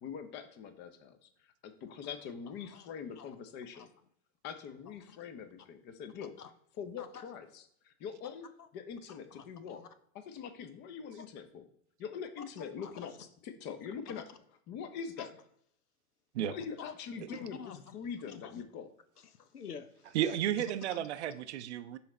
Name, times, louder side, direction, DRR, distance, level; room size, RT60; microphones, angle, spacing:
voice 1, 0.0-1.3 1.6-3.9 4.4-6.3 6.8-8.5 8.7-9.8 10.1-11.6 12.0-14.2 14.7-15.3 16.4-17.6 17.9-18.9, left 7 dB, 25° left, 0.6 m, -43 dB
voice 2, 6.2-6.5 7.0-7.2 8.6-8.7 9.1-9.9 11.2-11.3 12.6-13.1 14.1-14.2 15.2-15.3 16.8-17.0 17.3-18.0 18.3-18.6 19.2-20.2 20.6-21.1, left 7 dB, 85° left, 0.8 m, -49 dB
voice 3, 20.1-22.0, right 11 dB, 50° right, 0.5 m, -33 dB
5.7 x 3.9 x 4.2 m
hypercardioid pair, 110°, 45 cm